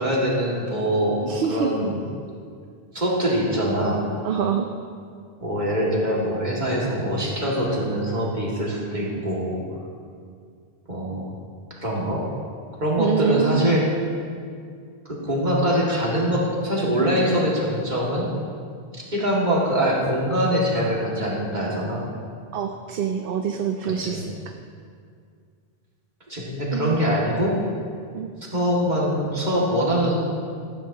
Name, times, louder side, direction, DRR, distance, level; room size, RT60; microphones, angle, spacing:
voice 1, 0.0-1.2 1.5-2.0 2.9-4.0 5.4-9.6 10.9-11.4 11.8-12.3 12.8-13.9 15.1-18.3 18.9-22.0 23.9-24.2 26.3-27.6 28.5-30.1, equal, 45° right, -4 dB, 2.4 m, -23 dB
voice 2, 1.2-1.7 4.2-4.7 13.0-13.8 22.5-24.5 26.7-27.2 28.1-28.3, right 7 dB, 65° right, 4 dB, 0.8 m, -26 dB
13.5 x 13.0 x 2.9 m, 2.2 s
omnidirectional pair, 1.0 m